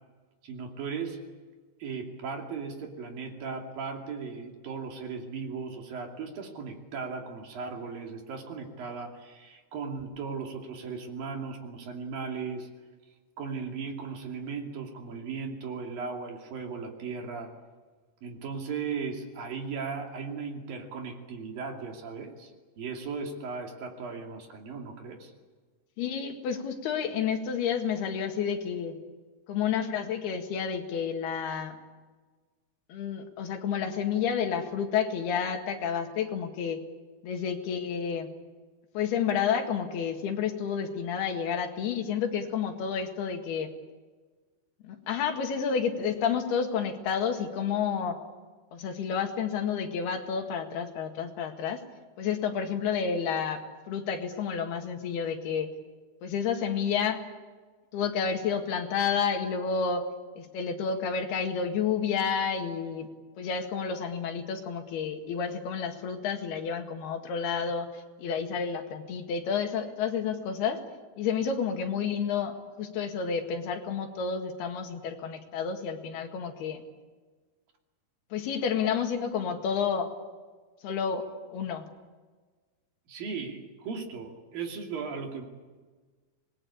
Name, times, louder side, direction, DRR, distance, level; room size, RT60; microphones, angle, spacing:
voice 1, 0.4-1.2 1.8-12.7 13.4-17.5 18.2-22.5 22.8-25.3 83.1-85.4, right 5 dB, 65° right, 2 dB, 4.4 m, -37 dB
voice 2, 26.0-29.0 29.5-31.8 32.9-36.8 37.2-38.3 39.0-43.7 44.8-48.2 48.7-51.8 52.2-53.6 53.9-55.7 56.2-57.2 57.9-60.1 60.4-63.1 63.4-70.8 71.2-76.8 78.3-80.1 80.8-81.2 81.5-81.9, left 7 dB, 80° left, 4 dB, 3.9 m, -30 dB
26.0 x 21.0 x 8.5 m, 1.4 s
omnidirectional pair, 4.5 m